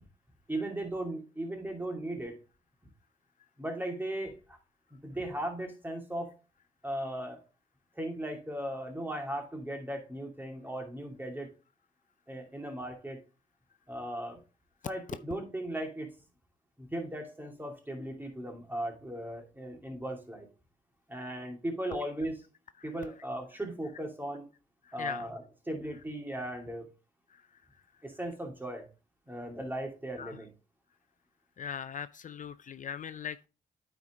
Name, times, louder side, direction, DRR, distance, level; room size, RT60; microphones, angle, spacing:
voice 1, 0.5-2.4 3.6-4.6 5.0-6.3 6.8-7.4 8.0-11.5 12.3-13.2 13.9-14.4 14.8-16.1 16.8-20.5 21.1-22.4 22.8-24.5 24.9-26.9 28.0-28.8 29.3-30.5, right 1 dB, 10° right, 2.7 m, -37 dB
voice 2, 31.6-33.5, left 8 dB, 50° left, 0.4 m, -39 dB
9.3 x 4.5 x 3.7 m
cardioid pair, 60°, 16 cm